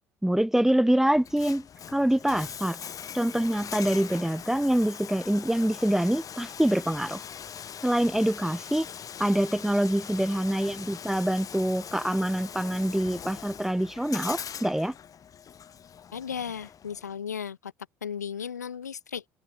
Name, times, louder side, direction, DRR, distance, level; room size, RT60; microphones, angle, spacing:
voice 1, 0.2-2.8 3.1-7.2 7.8-8.9 9.2-14.9, right 1 dB, 5° right, 0.7 m, -25 dB
Bathtub (filling or washing), 1.1-17.1, left 8 dB, 40° left, 3.0 m, -41 dB
voice 2, 16.1-17.7 18.0-19.2, left 7 dB, 85° left, 0.7 m, -35 dB
figure-of-eight pair, 55°, 9 cm